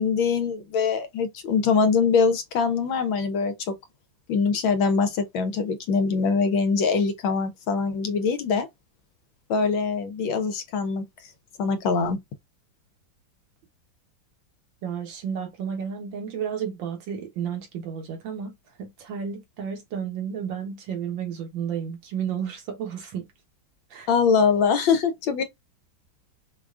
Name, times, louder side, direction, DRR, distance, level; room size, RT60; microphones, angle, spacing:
voice 1, 0.0-3.7 4.3-8.7 9.5-11.0 11.6-12.2 24.1-25.4, left 5 dB, 80° left, 1.5 m, -23 dB
voice 2, 14.8-18.5 18.8-23.3 23.9-24.1, right 7 dB, 70° right, 1.7 m, -32 dB
5.2 x 2.3 x 2.4 m
omnidirectional pair, 2.1 m